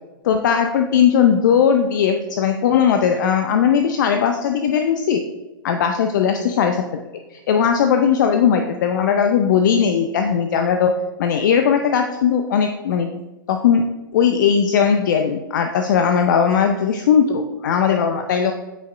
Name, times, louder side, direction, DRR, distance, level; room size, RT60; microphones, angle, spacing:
voice 1, 0.2-5.2 5.6-6.9 7.3-10.9 11.2-13.1 13.5-13.8 14.1-18.5, left 7 dB, 55° left, 6 dB, 0.5 m, -18 dB
8.5 x 5.3 x 2.6 m, 1.1 s
hypercardioid pair, 115°, 12 cm